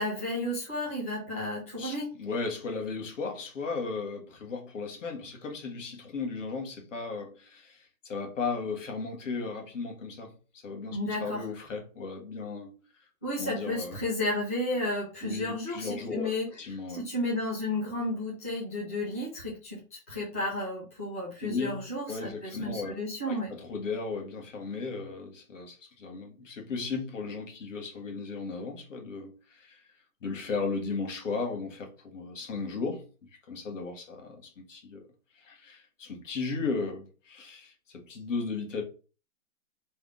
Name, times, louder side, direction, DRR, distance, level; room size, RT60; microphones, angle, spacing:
voice 1, 0.0-2.1 10.9-11.5 13.2-16.5 17.0-19.8 20.1-23.5, left 1 dB, 10° left, 0.5 m, -32 dB
voice 2, 1.8-12.7 13.4-14.0 15.2-16.3 16.6-17.0 21.4-23.0 23.3-29.8 30.2-33.0 33.5-35.0 35.3-38.8, left 4 dB, 55° left, 1.5 m, -36 dB
3.4 x 3.4 x 3.7 m
hypercardioid pair, 165°, 45 cm